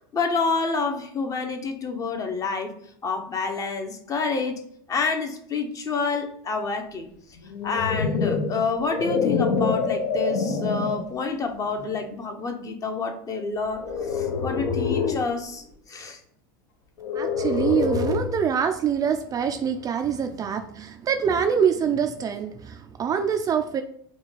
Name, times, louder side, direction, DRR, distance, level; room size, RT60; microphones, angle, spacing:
voice 1, 0.1-2.7 3.0-4.6 4.9-7.1 7.6-13.8 14.1-16.2, left 4 dB, 25° left, 6 dB, 0.7 m, -28 dB
sound 1, 7.4-11.1 11.7-12.0 13.8-15.3 17.0-18.4, left 5 dB, 75° left, 0.9 m, -26 dB
voice 2, 17.1-23.8, right 7 dB, 30° right, 6 dB, 0.4 m, -25 dB
4.9 x 2.3 x 3.9 m, 0.66 s
supercardioid pair, 115°, 13 cm